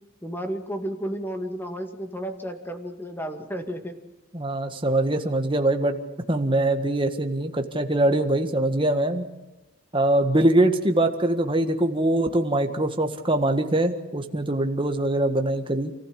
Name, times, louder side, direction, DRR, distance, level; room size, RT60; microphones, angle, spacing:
voice 1, 0.2-3.9, equal, 10° left, 6 dB, 2.2 m, -32 dB
voice 2, 4.3-6.0 6.3-9.3 9.9-16.0, right 1 dB, 25° right, 5 dB, 1.8 m, -23 dB
28.5 x 15.5 x 8.8 m, 1.0 s
head